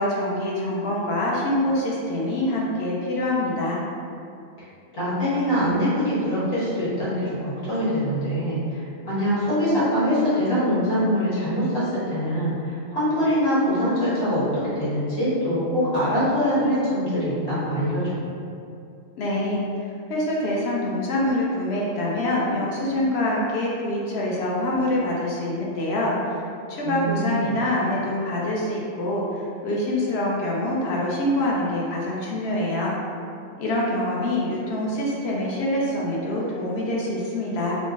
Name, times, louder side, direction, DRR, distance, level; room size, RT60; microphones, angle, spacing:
voice 1, 0.0-3.8 19.2-26.4 26.7-33.0 33.6-37.8, left 1 dB, 60° left, -4 dB, 0.8 m, -25 dB
voice 2, 4.9-18.2 26.8-27.5, equal, 80° left, -10 dB, 1.7 m, -23 dB
3.7 x 2.0 x 3.5 m, 2.5 s
omnidirectional pair, 1.3 m